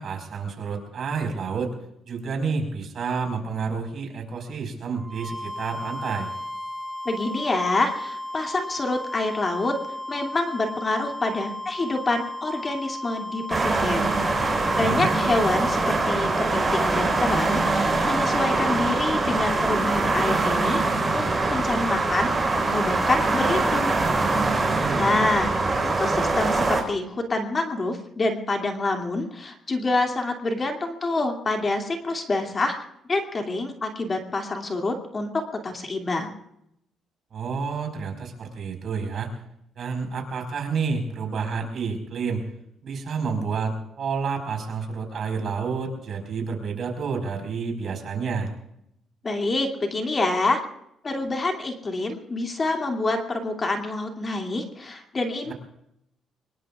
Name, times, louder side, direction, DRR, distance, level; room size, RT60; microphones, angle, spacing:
voice 1, 0.0-1.7 2.0-6.3 14.6-15.1 24.6-25.2 37.3-39.3 39.7-42.4 42.8-48.5 55.5-55.6, right 5 dB, 55° right, 3 dB, 5.0 m, -29 dB
sound 1, 4.9-20.2, left 1 dB, 5° right, 4.1 m, -35 dB
voice 2, 7.0-9.7 10.1-22.4 22.7-24.0 25.0-25.5 25.8-36.4 49.2-50.6 51.0-55.5, left 2 dB, 30° left, 3 dB, 2.6 m, -27 dB
sound 2, 13.5-26.8, right 3 dB, 20° right, 4.6 m, -23 dB
25.0 x 21.5 x 2.5 m, 0.77 s
cardioid pair, 115°, 0 cm